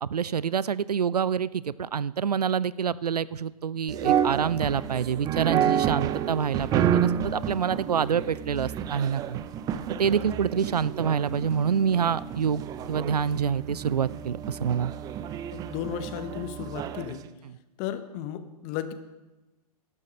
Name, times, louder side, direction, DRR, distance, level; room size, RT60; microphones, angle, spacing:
voice 1, 0.0-9.4 9.9-14.9, right 7 dB, 85° right, 20 dB, 0.4 m, -27 dB
sound 1, 3.9-17.2, right 9 dB, 20° right, 0.5 m, -30 dB
voice 2, 15.5-17.3 17.8-18.9, left 10 dB, 35° left, 11 dB, 0.9 m, -34 dB
12.0 x 10.5 x 5.1 m, 1.1 s
figure-of-eight pair, 115°, 20 cm